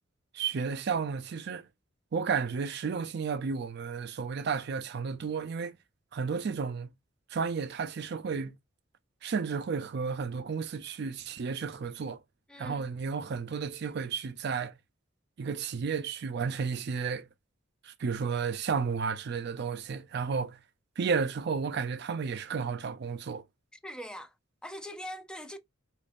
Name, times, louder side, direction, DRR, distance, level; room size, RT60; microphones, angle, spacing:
voice 1, 0.3-1.7 2.1-5.8 6.1-6.9 7.3-8.5 9.2-12.2 12.6-14.7 15.4-17.3 17.8-20.6 21.0-23.4, right 5 dB, 60° right, 0.4 m, -32 dB
voice 2, 12.5-12.9 23.8-24.3 24.6-25.6, equal, 5° left, 0.4 m, -42 dB
5.0 x 2.4 x 2.4 m
head